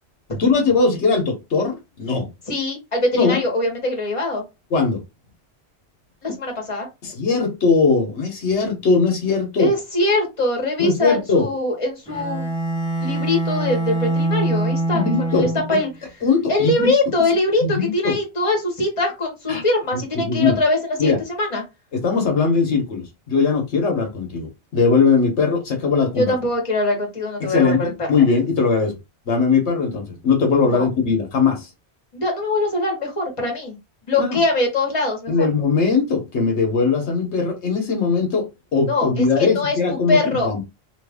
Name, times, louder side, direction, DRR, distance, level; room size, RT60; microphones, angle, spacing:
voice 1, 0.4-2.3 3.1-3.4 4.7-5.0 7.0-9.7 10.8-11.5 14.9-15.5 16.2-16.9 17.6-18.2 19.5-19.6 19.9-20.6 21.0-21.2 21.9-26.3 27.4-28.9 29.3-31.7 34.2-34.4 35.3-38.4 38.7-40.6, left 4 dB, 85° left, 1.3 m, -20 dB
voice 2, 2.5-4.4 6.2-6.9 9.6-12.5 13.0-15.9 16.5-21.6 26.2-28.1 30.6-30.9 32.1-33.8 34.1-35.5 38.9-40.5, left 2 dB, 30° left, 1.3 m, -22 dB
Bowed string instrument, 12.1-15.9, right 2 dB, 5° left, 0.9 m, -24 dB
2.8 x 2.5 x 3.4 m
omnidirectional pair, 1.1 m